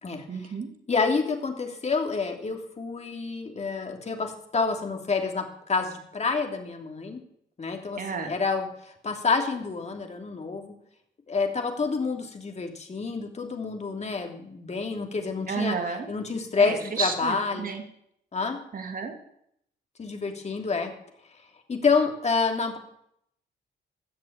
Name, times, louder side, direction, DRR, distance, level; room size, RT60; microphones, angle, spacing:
voice 1, 0.3-0.7 8.0-8.3 15.5-16.1 16.6-17.8 18.7-19.1, right 5 dB, 45° right, 5 dB, 2.7 m, -31 dB
voice 2, 0.9-7.2 7.6-10.7 11.3-15.8 16.1-17.8 18.3-18.6 20.0-20.9 21.7-22.8, left 4 dB, 35° left, 4 dB, 3.0 m, -28 dB
15.5 x 6.8 x 8.9 m, 0.73 s
cardioid pair, 80°, 19 cm